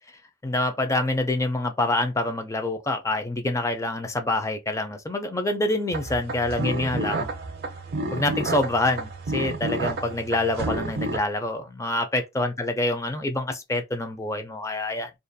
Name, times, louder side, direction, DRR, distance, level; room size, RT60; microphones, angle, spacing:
voice 1, 0.4-7.3 8.1-15.1, left 2 dB, 15° left, 0.4 m, -26 dB
sound 1, 5.9-11.2, right 2 dB, 55° right, 0.5 m, -30 dB
2.4 x 2.2 x 2.6 m
head